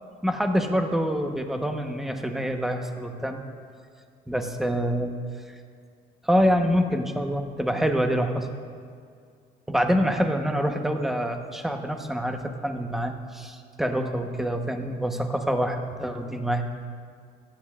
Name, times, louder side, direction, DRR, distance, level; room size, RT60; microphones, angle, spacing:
voice 1, 0.2-3.4 4.3-5.1 5.5-5.6 6.2-8.5 9.7-16.6, equal, ahead, 4 dB, 1.0 m, -26 dB
28.0 x 9.6 x 2.5 m, 2.2 s
cardioid pair, 110°, 17 cm